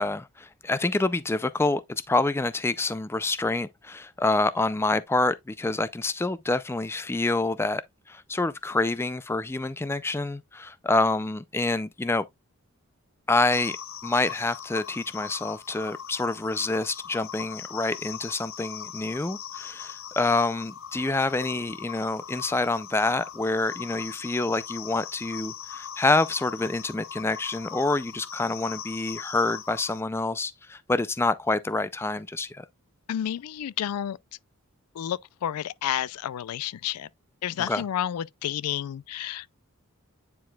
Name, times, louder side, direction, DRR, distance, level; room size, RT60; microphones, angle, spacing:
voice 1, 0.0-7.8 8.1-12.2 13.3-13.8 14.0-32.7 37.7-37.8, left 2 dB, 10° left, 0.3 m, -27 dB
sound 1, 13.5-30.0, left 9 dB, 65° left, 0.7 m, -40 dB
voice 2, 33.1-34.2 35.0-37.1 37.4-39.5, left 10 dB, 85° left, 0.3 m, -30 dB
9.4 x 4.6 x 2.2 m
head